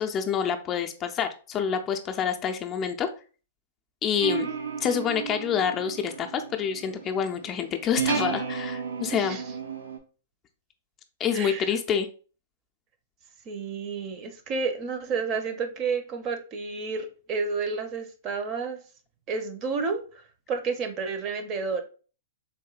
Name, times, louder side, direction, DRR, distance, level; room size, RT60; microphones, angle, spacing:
voice 1, 0.0-3.1 4.0-4.5 4.8-9.4 11.2-12.1, left 7 dB, 25° left, 5 dB, 0.4 m, -27 dB
sound 1, 4.2-10.0, right 6 dB, 80° right, 0.5 m, -33 dB
voice 2, 11.3-11.7 13.5-18.8 19.3-21.8, right 4 dB, 35° right, 8 dB, 0.6 m, -31 dB
3.6 x 2.7 x 2.3 m, 0.37 s
hypercardioid pair, 120°, 0 cm